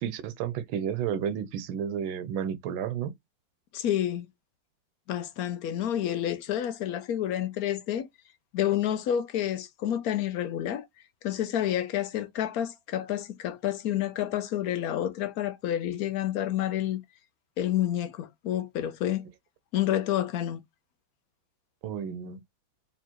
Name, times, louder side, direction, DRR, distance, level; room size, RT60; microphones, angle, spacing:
voice 1, 0.0-3.1 21.8-22.4, right 8 dB, 85° right, 1.5 m, -32 dB
voice 2, 3.7-4.3 5.1-8.1 8.5-10.9 11.2-17.0 17.6-19.3 19.7-20.6, left 11 dB, 80° left, 0.8 m, -29 dB
4.3 x 3.8 x 2.9 m
omnidirectional pair, 2.1 m